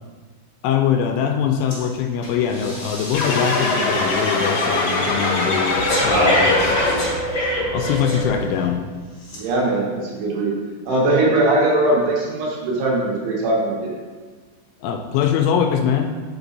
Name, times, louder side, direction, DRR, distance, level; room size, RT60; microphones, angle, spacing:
voice 1, 0.6-6.5 7.7-8.8 14.8-16.1, left 8 dB, 85° left, 4 dB, 2.9 m, -22 dB
Breathing, 1.7-1.9 2.2-8.7 9.2-9.4, equal, 40° left, 1.7 m, -26 dB
sound 1, 3.1-7.3, left 2 dB, 70° left, 2.2 m, -22 dB
voice 2, 6.0-6.5 9.3-10.6 10.9-13.9, right 2 dB, 75° right, -3 dB, 3.6 m, -20 dB
7.1 x 5.0 x 4.0 m, 1.4 s
omnidirectional pair, 5.7 m